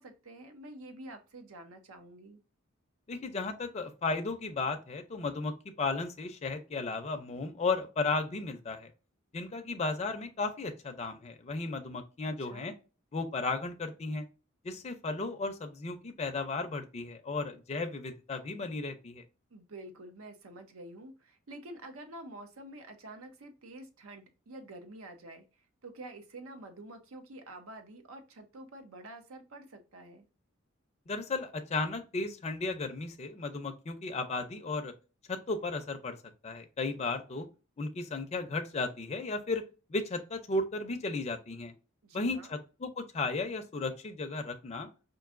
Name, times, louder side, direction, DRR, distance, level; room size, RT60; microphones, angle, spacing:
voice 1, 0.0-2.4 12.2-12.7 19.5-25.5 25.8-30.3 42.0-42.5, right 1 dB, 85° right, 6 dB, 0.7 m, -48 dB
voice 2, 3.1-8.9 9.3-12.7 13.1-14.3 14.6-19.2 31.1-34.9 35.3-36.2 36.4-37.5 37.8-39.6 39.9-41.7 42.1-44.9, left 3 dB, 30° left, 5 dB, 0.4 m, -34 dB
4.5 x 2.6 x 2.4 m, 0.32 s
head